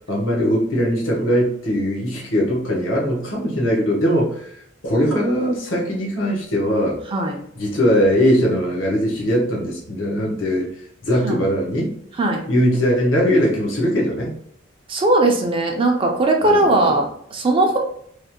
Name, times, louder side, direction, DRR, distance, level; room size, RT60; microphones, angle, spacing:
voice 1, 0.1-4.5 4.8-7.0 7.6-10.7 11.0-11.9 12.5-14.3 16.4-16.9, equal, 80° left, -3 dB, 1.0 m, -20 dB
voice 2, 14.9-17.8, right 2 dB, 25° right, 2 dB, 0.4 m, -19 dB
3.2 x 2.1 x 2.8 m, 0.66 s
head